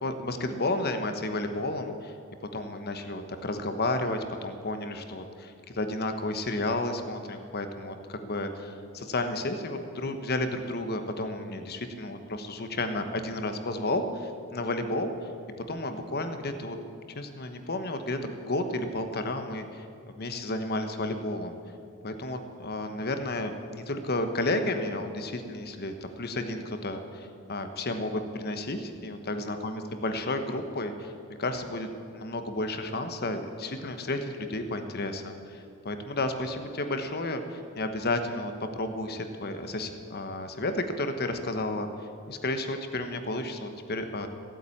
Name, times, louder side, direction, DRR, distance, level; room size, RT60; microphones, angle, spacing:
voice 1, 0.0-2.1 2.5-15.1 15.7-16.8 17.1-21.6 22.0-31.1 31.4-41.9 42.3-44.3, left 2 dB, 45° left, 7 dB, 1.2 m, -32 dB
16.0 x 9.0 x 8.6 m, 2.5 s
head